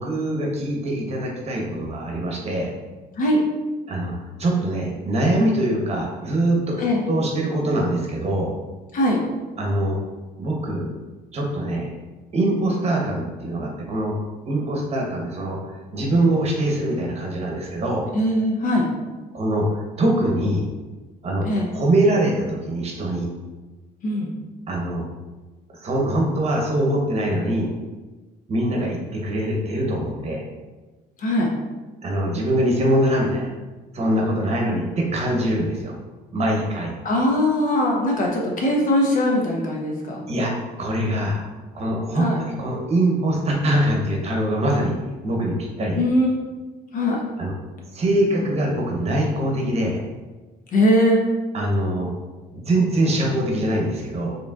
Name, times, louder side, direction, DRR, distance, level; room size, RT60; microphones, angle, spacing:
voice 1, 0.0-2.7 3.9-4.1 4.4-6.8 7.1-8.5 9.6-10.0 10.4-10.9 11.3-11.9 12.3-14.2 14.4-15.6 15.9-18.1 19.3-20.7 21.2-21.5 21.7-23.3 24.7-25.0 25.8-27.7 28.5-30.4 32.0-33.5 33.9-35.9 36.3-36.9 40.3-40.5 40.8-41.5 41.7-44.9 45.2-46.0 47.4-47.5 47.9-50.0 51.5-52.1 52.5-54.3, right 1 dB, 40° right, -1 dB, 0.9 m, -23 dB
voice 2, 18.1-18.9 21.4-21.7 24.0-24.3 31.2-31.5 37.0-40.3 42.2-42.4 45.9-46.4 46.9-47.2 50.7-51.2, left 1 dB, 55° left, -1 dB, 0.9 m, -20 dB
4.8 x 3.1 x 2.4 m, 1.2 s
cardioid pair, 110°, 17 cm